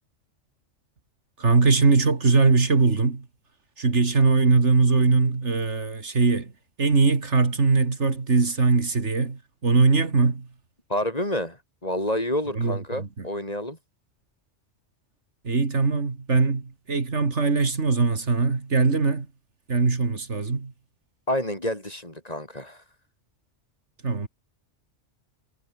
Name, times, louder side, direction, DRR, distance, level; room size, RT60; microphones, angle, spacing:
voice 1, 1.4-3.3 3.8-6.5 6.8-10.5 12.6-13.3 15.4-19.3 19.7-20.7 24.0-24.3, right 4 dB, 70° right, 2.7 m, -21 dB
voice 2, 10.9-13.8 21.3-22.8, left 1 dB, 30° left, 6.1 m, -29 dB
omnidirectional pair, 1.3 m